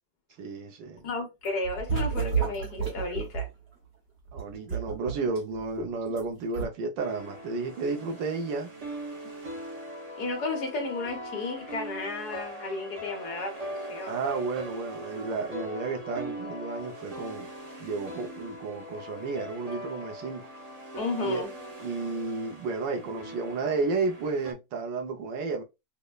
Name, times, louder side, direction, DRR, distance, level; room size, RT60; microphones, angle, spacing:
voice 1, 0.4-1.1 4.3-8.7 14.1-17.5 17.8-20.5 21.2-21.4 21.8-25.6, right 4 dB, 80° right, 1.4 m, -32 dB
voice 2, 1.0-3.5 10.2-14.2 21.0-21.5, left 3 dB, 60° left, 1.4 m, -33 dB
sound 1, 1.4-3.5 4.3-6.2 6.5-6.6, right 6 dB, 40° right, 1.0 m, -31 dB
sound 2, 7.0-24.5, equal, 60° right, 0.4 m, -41 dB
5.2 x 2.1 x 2.3 m
omnidirectional pair, 2.0 m